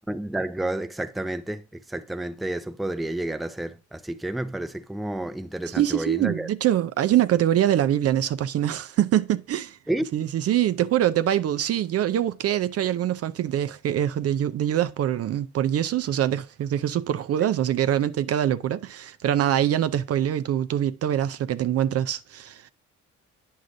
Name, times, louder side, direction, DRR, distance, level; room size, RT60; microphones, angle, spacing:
voice 1, 0.1-6.5 9.9-10.1, right 1 dB, ahead, 0.5 m, -30 dB
voice 2, 5.7-9.8 10.1-22.7, right 11 dB, 55° right, 0.4 m, -24 dB
9.5 x 6.4 x 2.5 m
cardioid pair, 90°, 30 cm